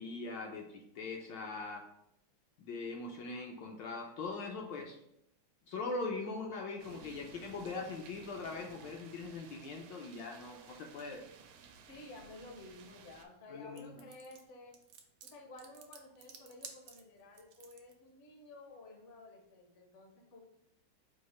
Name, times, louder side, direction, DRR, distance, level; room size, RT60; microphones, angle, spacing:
voice 1, 0.0-1.9 2.6-5.0 5.7-11.2 13.5-14.0, left 3 dB, 75° left, 1 dB, 1.2 m, -41 dB
sound 1, 6.8-13.3, right 6 dB, 90° right, 1.4 m, -56 dB
voice 2, 11.9-14.8 15.2-20.4, left 2 dB, 55° left, 1 dB, 0.8 m, -53 dB
sound 2, 13.8-17.9, right 7 dB, 70° right, 0.9 m, -53 dB
4.7 x 2.4 x 4.2 m, 0.78 s
omnidirectional pair, 2.2 m